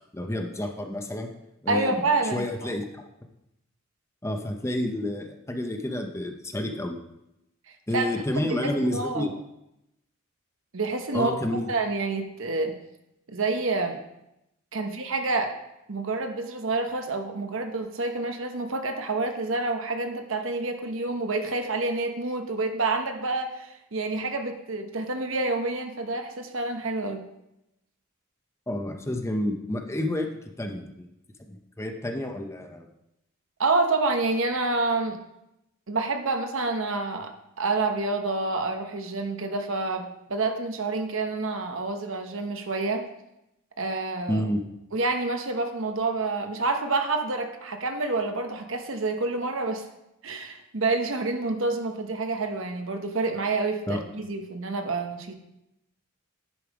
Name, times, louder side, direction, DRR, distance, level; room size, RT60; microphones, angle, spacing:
voice 1, 0.1-1.3 1.6-2.0 2.3-3.0 4.2-7.0 7.9-9.3 11.1-11.7 28.7-30.3 30.6-31.1 31.5-32.9 44.3-44.6 53.9-54.0, left 1 dB, 15° left, 4 dB, 0.7 m, -29 dB
voice 2, 1.7-2.7 7.9-8.2 8.5-9.3 10.7-11.3 11.7-12.7 13.3-14.0 14.7-15.5 15.9-27.2 33.6-35.2 35.9-37.3 37.6-43.1 43.8-44.5 44.9-49.8 50.2-55.3, right 3 dB, 70° right, 5 dB, 1.0 m, -28 dB
10.5 x 5.4 x 4.8 m, 0.86 s
head